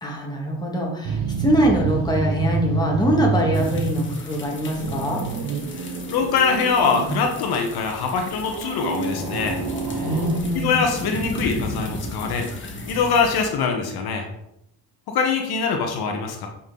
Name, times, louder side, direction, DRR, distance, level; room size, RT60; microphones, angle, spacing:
voice 1, 0.0-5.3 10.0-10.7, equal, 10° left, -2 dB, 2.2 m, -23 dB
sound 1, 1.0-4.2 4.5-7.6 8.4-10.4, right 5 dB, 60° right, 1.1 m, -28 dB
sound 2, 3.5-13.5, left 2 dB, 30° left, 1.5 m, -35 dB
voice 2, 5.7-9.6 9.9-10.1 10.5-14.3 15.1-16.5, left 5 dB, 70° left, 3 dB, 1.3 m, -23 dB
7.6 x 5.8 x 4.0 m, 0.79 s
cardioid pair, 110°, 38 cm